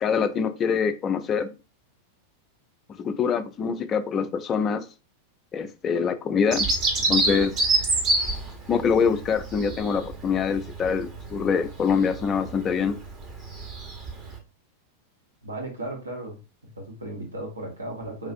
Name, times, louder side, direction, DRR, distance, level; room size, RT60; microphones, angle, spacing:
voice 1, 0.0-1.5 3.0-4.9 5.5-6.7 7.1-7.5 8.7-13.0, left 6 dB, 25° left, 0.3 m, -24 dB
Bird vocalization bird call bird song, 6.5-14.4, right 3 dB, 35° right, 0.9 m, -28 dB
voice 2, 15.4-16.4 16.7-18.3, right 1 dB, 75° right, 0.9 m, -35 dB
3.5 x 2.4 x 2.4 m
figure-of-eight pair, 90°, 0 cm